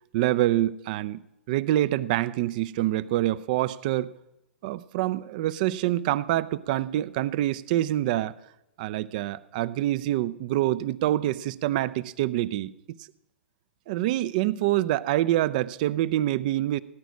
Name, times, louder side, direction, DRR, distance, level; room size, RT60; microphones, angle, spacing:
voice 1, 0.1-4.1 4.6-8.3 8.8-12.7 13.9-16.8, right 14 dB, 45° right, 17 dB, 0.6 m, -26 dB
18.5 x 10.0 x 6.2 m, 0.89 s
figure-of-eight pair, 105°, 6 cm